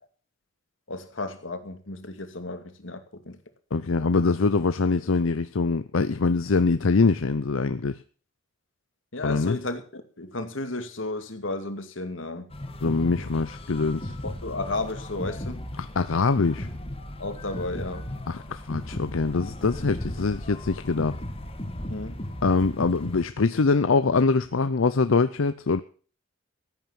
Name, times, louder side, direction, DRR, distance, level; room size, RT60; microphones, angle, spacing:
voice 1, 0.9-3.4 9.1-12.5 14.2-15.7 17.2-18.1 21.9-22.2, left 2 dB, 70° left, 2.4 m, -33 dB
voice 2, 3.7-8.0 9.2-9.6 12.8-14.1 15.8-16.7 18.3-21.2 22.4-25.8, left 4 dB, 90° left, 0.7 m, -23 dB
sound 1, 12.5-23.2, left 1 dB, 30° left, 1.9 m, -36 dB
15.0 x 9.2 x 7.2 m
head